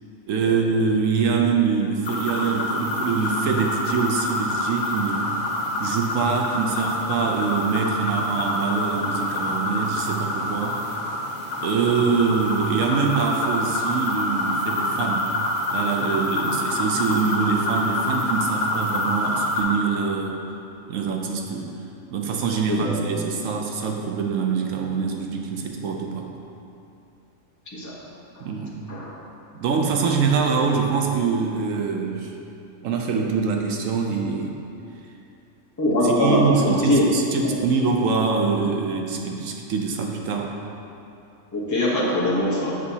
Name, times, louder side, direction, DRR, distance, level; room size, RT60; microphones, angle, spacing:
voice 1, 0.3-5.3 5.8-10.8 11.6-15.3 15.7-20.4 20.9-21.7 22.1-26.3 28.4-28.8 29.5-32.3 32.8-34.6 36.2-40.5, right 5 dB, 75° right, 1 dB, 0.9 m, -24 dB
sound 1, 2.0-19.6, left 1 dB, 90° left, 1.4 m, -26 dB
voice 2, 35.8-37.1 37.4-37.5 41.5-42.7, left 1 dB, 15° left, -6 dB, 0.8 m, -22 dB
7.8 x 5.6 x 2.8 m, 2.7 s
omnidirectional pair, 1.4 m